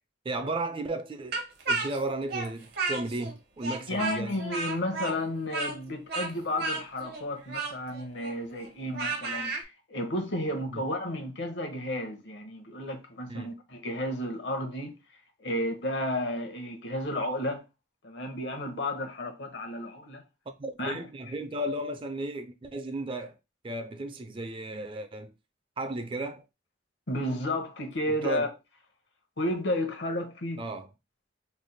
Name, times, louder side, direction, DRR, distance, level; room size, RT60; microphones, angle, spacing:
voice 1, 0.2-4.4 10.7-10.8 13.3-13.5 20.6-23.4 23.6-25.3 25.8-26.4 28.1-28.5 30.6-30.9, right 2 dB, 30° right, 0.4 m, -34 dB
Speech, 1.3-3.3 3.6-9.6, right 3 dB, 60° right, 0.7 m, -33 dB
voice 2, 3.9-14.9 15.4-17.6 18.0-20.2 20.8-21.0 27.1-28.5 29.4-30.6, left 1 dB, 70° left, 0.8 m, -32 dB
3.3 x 2.1 x 4.0 m
head